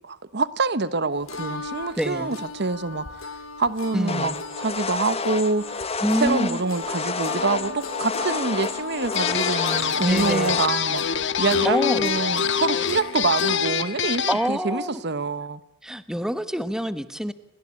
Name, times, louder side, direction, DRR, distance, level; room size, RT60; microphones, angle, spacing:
voice 1, 0.0-3.1 3.6-4.3 4.6-5.8 6.2-15.6, right 3 dB, 55° right, 1.1 m, -26 dB
sound 1, 1.3-13.6, left 5 dB, 80° left, 3.4 m, -33 dB
voice 2, 2.0-2.3 3.9-4.4 6.0-6.6 10.0-10.6 11.6-12.1 14.3-15.0 15.8-17.3, equal, 5° right, 1.3 m, -26 dB
sound 2, 4.1-10.7, left 4 dB, 30° left, 1.4 m, -30 dB
sound 3, 9.2-14.5, left 8 dB, 60° left, 1.5 m, -26 dB
30.0 x 23.0 x 8.7 m
head